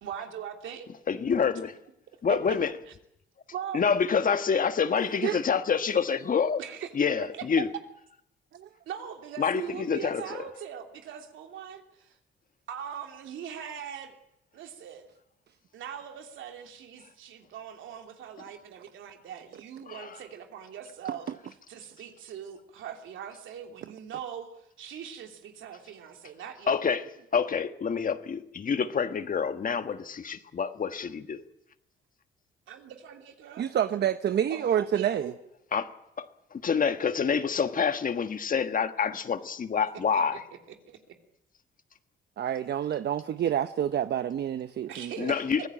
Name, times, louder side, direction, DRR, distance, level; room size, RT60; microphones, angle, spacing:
voice 1, 0.0-0.9 2.3-2.6 3.5-3.8 6.6-6.9 7.2-7.3 8.9-12.2 12.7-14.2 14.5-15.1 15.7-21.3 21.7-26.8 32.7-33.7 34.5-35.4 40.1-40.2 40.9-41.1 44.8-45.7, right 8 dB, 75° right, 3.0 m, -41 dB
voice 2, 1.1-1.7 2.2-2.7 3.7-6.6 6.9-7.7 9.4-10.2 19.9-20.2 26.7-31.4 35.7-35.9 36.5-40.4 45.2-45.7, left 6 dB, 45° left, 1.5 m, -27 dB
voice 3, 33.6-35.3 42.4-45.3, right 10 dB, 55° right, 0.8 m, -28 dB
24.0 x 16.5 x 8.9 m
cardioid pair, 90°, 20 cm